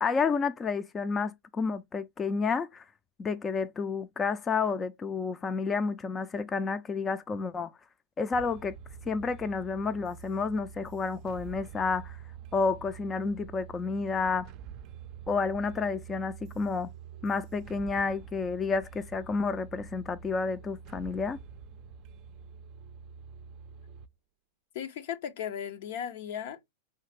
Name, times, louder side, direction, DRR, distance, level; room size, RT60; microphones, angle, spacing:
voice 1, 0.0-2.8 3.2-7.7 8.2-8.7 9.1-12.2 12.5-14.5 15.3-16.9 17.2-21.4, left 4 dB, 20° left, 0.4 m, -30 dB
Black Magick Voodoo Tribal, 8.3-24.1, right 7 dB, 45° right, 0.4 m, -47 dB
voice 2, 24.7-26.7, left 9 dB, 65° left, 0.6 m, -36 dB
4.8 x 3.2 x 3.2 m
hypercardioid pair, 105°, 0 cm